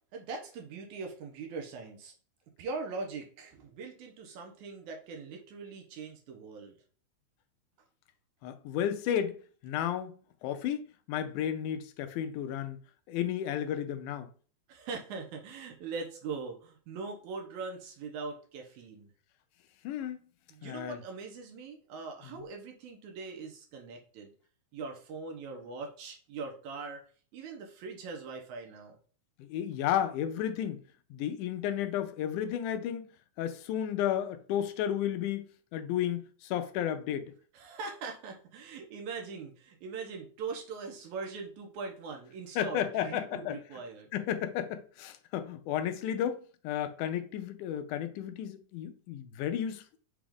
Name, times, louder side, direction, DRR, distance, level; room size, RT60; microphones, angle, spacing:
voice 1, 0.1-2.1 2.6-6.8 14.7-19.1 20.5-24.3 24.7-27.0 27.3-29.0 37.5-44.1, right 4 dB, 75° right, 2.1 m, -41 dB
voice 2, 8.4-12.8 13.1-14.3 19.8-20.2 20.6-21.0 29.4-30.8 31.1-33.1 33.4-35.5 35.7-37.3 42.6-43.6 44.1-50.0, left 10 dB, 80° left, 2.0 m, -33 dB
6.0 x 2.4 x 3.5 m
omnidirectional pair, 3.6 m